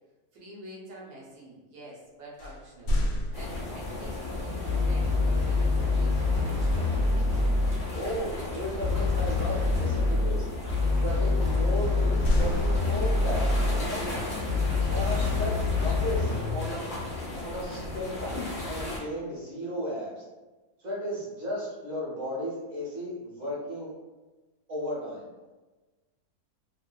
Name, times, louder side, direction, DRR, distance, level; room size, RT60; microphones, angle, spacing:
voice 1, 0.3-3.0 3.3-7.2, right 1 dB, 90° right, -5 dB, 1.3 m, -47 dB
sound 1, 2.4-4.0 6.8-7.1 7.5-7.8 11.8-13.4, equal, 85° left, 1.1 m, -30 dB
sound 2, 3.3-19.0, left 2 dB, 40° left, 0.5 m, -36 dB
sound 3, 4.6-7.9 8.8-13.9 14.5-16.7, left 3 dB, 5° right, 1.0 m, -26 dB
voice 2, 7.9-10.4 10.9-14.0 14.9-16.9 17.4-20.2 20.8-23.9 24.7-25.3, equal, 30° right, -8 dB, 1.0 m, -35 dB
2.8 x 2.3 x 2.2 m, 1.2 s
omnidirectional pair, 1.6 m